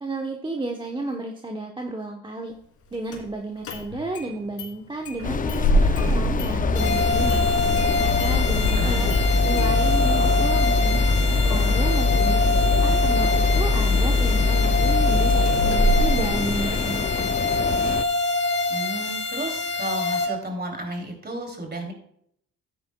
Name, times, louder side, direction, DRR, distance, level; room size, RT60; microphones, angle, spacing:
voice 1, 0.0-2.5 2.9-7.5 8.0-9.1 9.4-11.0 11.4-17.3, right 2 dB, 15° right, 1 dB, 1.0 m, -32 dB
Engine starting, 3.1-3.2 3.6-4.3 4.6-4.7 5.1-17.0, left 2 dB, 80° left, 2.7 m, -22 dB
sound 1, 5.2-18.0, left 6 dB, 30° left, 0.5 m, -28 dB
sound 2, 6.7-20.3, left 2 dB, 50° left, 4.3 m, -25 dB
voice 2, 8.7-9.8 18.7-21.9, right 1 dB, 35° right, 2 dB, 2.9 m, -33 dB
13.0 x 9.3 x 2.3 m, 0.70 s
cardioid pair, 90°, 30 cm